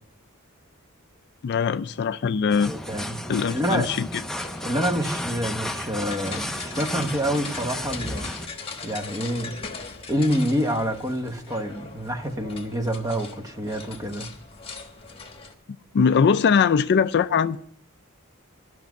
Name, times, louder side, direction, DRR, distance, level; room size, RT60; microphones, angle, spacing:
voice 1, 1.4-2.7 3.3-4.1 15.9-17.6, left 6 dB, 50° left, 0.4 m, -21 dB
sound 1, 2.5-8.5, left 1 dB, ahead, 0.6 m, -33 dB
voice 2, 2.7-3.2 3.5-3.9 4.6-8.3 8.5-9.5 10.1-14.3, equal, 15° right, 1.0 m, -27 dB
sound 2, 4.4-15.5, left 4 dB, 25° left, 1.2 m, -40 dB
11.5 x 6.1 x 9.2 m
head